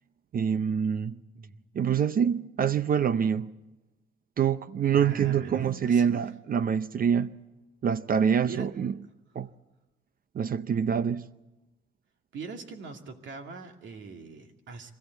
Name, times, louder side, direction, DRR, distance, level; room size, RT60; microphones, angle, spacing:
voice 1, 0.3-1.2 1.7-3.5 4.4-7.3 7.8-8.9 9.3-9.5 10.3-11.2, right 7 dB, 45° right, 0.7 m, -25 dB
voice 2, 4.9-6.1 8.4-8.7 12.3-14.9, right 4 dB, 70° right, 2.5 m, -42 dB
25.0 x 14.5 x 8.2 m
cardioid pair, 90°, 20 cm